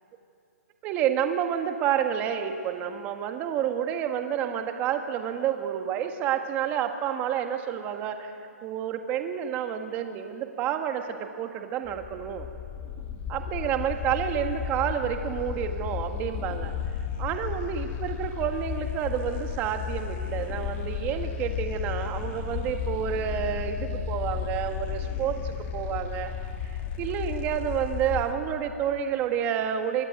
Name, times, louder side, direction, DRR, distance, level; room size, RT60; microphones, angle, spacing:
voice 1, 0.8-8.3 8.6-12.5 13.3-16.8 17.2-26.3 26.6-26.7 27.0-30.1, right 9 dB, 20° right, 6 dB, 1.7 m, -29 dB
sound 1, 11.9-28.3, left 8 dB, 20° left, 1.6 m, -33 dB
25.0 x 23.0 x 9.1 m, 2.4 s
hypercardioid pair, 165°, 9 cm